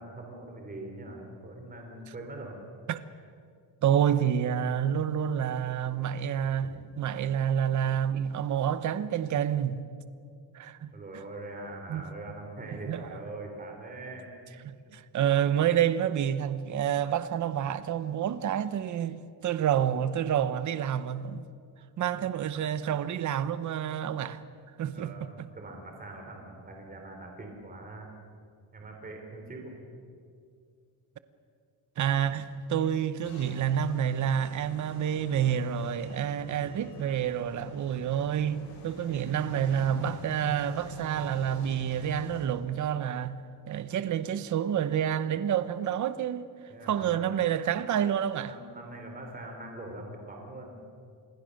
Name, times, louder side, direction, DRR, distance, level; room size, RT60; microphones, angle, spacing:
voice 1, 0.0-2.6 6.6-6.8 10.9-14.5 22.2-22.3 24.9-28.1 28.7-29.7 46.7-47.2 48.4-50.8, right 2 dB, 20° right, 3.3 m, -43 dB
voice 2, 3.8-9.8 10.5-10.9 11.9-12.0 12.7-13.1 14.6-21.5 22.0-24.4 24.8-25.1 25.4-25.5 32.0-43.4 43.7-46.5 46.9-48.6, right 9 dB, 45° right, 0.9 m, -28 dB
sound 1, 33.2-42.5, left 1 dB, 70° left, 7.1 m, -45 dB
27.5 x 21.0 x 6.5 m
cardioid pair, 175°, 42 cm